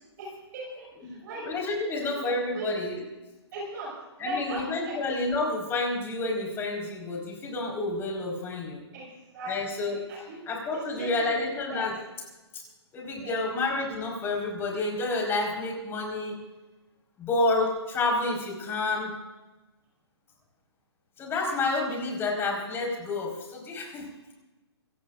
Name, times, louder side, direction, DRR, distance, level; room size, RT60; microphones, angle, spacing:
voice 1, 0.2-1.4 1.9-2.2 2.5-3.1 3.5-3.9 4.2-4.9 8.9-9.5 9.8-10.4 10.7-11.9 13.2-13.4, right 1 dB, 45° right, -3 dB, 5.8 m, -38 dB
voice 2, 1.0-2.9 4.2-8.8 9.5-12.0 12.5-12.6 12.9-16.4 17.2-19.1 21.2-24.3, left 2 dB, 15° left, 0 dB, 4.3 m, -29 dB
25.0 x 17.0 x 2.5 m, 1.1 s
hypercardioid pair, 140°, 14 cm